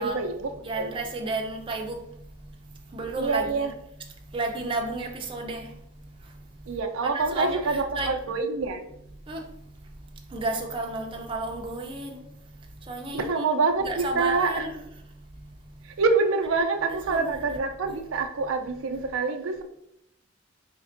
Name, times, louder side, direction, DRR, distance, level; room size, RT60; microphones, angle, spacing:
voice 1, 0.0-0.9 3.1-3.7 6.7-8.8 13.1-14.6 16.0-19.6, right 4 dB, 90° right, 0.4 m, -26 dB
voice 2, 0.6-2.0 2.9-3.7 4.3-5.6 7.0-8.1 9.3-9.4 10.3-12.2 12.9-13.4 13.8-14.7 16.9-17.6, right 2 dB, 25° right, 0.5 m, -32 dB
4.3 x 3.3 x 2.5 m
head